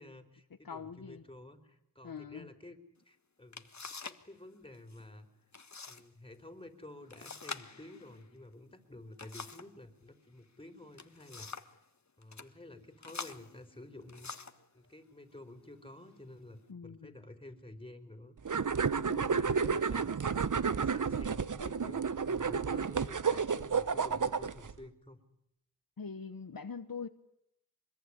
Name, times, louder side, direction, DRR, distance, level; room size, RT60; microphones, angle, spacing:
voice 1, 0.0-2.8 3.0-3.7 4.0-5.3 5.9-11.5 12.2-14.3 14.7-18.4 19.2-20.1 20.5-25.2, left 1 dB, 15° left, 5 dB, 4.4 m, -51 dB
voice 2, 0.6-1.2 2.0-2.5 16.7-17.1 18.8-19.6 26.0-27.1, left 5 dB, 70° left, 9 dB, 1.3 m, -44 dB
sound 1, 3.0-3.1 3.5-4.3 4.5-5.0 5.5-6.0 6.3-6.4 7.1-9.8 10.7-11.8 12.2-12.5 13.0-14.7 15.4-15.6 16.1-16.6, left 4 dB, 50° left, 1.6 m, -46 dB
sound 2, 18.4-24.7, right 5 dB, 55° right, 1.0 m, -31 dB
24.5 x 22.0 x 9.9 m, 0.79 s
wide cardioid pair, 50°, 36 cm